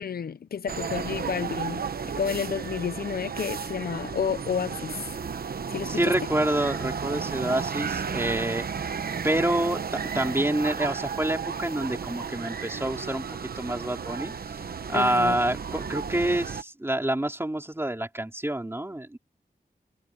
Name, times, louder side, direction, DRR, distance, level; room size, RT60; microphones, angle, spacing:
voice 1, 0.0-1.9 2.2-5.0 5.7-6.1 14.9-15.4, left 7 dB, 90° left, 0.6 m, -30 dB
sound 1, 0.7-16.6, right 6 dB, 80° right, 1.0 m, -33 dB
voice 2, 5.9-8.7 9.2-9.8 10.1-13.2 13.6-14.3 14.9-19.2, right 1 dB, 15° right, 4.0 m, -27 dB
wide cardioid pair, 85°, 15 cm